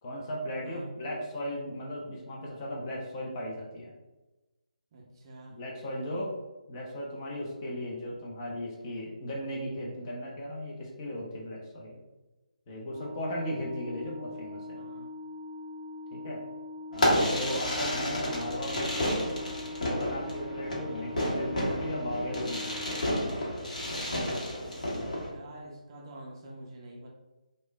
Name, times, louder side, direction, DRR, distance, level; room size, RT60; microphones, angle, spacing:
voice 1, 0.0-3.9 5.5-6.3 6.7-12.0 12.7-14.7 16.1-16.4 16.9-19.2 19.8-23.0, equal, 30° left, -3 dB, 0.6 m, -36 dB
voice 2, 4.9-5.6 14.8-15.1 25.2-27.1, right 1 dB, 30° right, -2 dB, 0.4 m, -47 dB
Organ, 12.8-23.7, left 2 dB, 5° right, 1.3 m, -42 dB
Fireworks, 16.9-25.3, equal, 65° left, 0.8 m, -31 dB
3.0 x 2.1 x 2.2 m, 1.1 s
figure-of-eight pair, 150°, 4 cm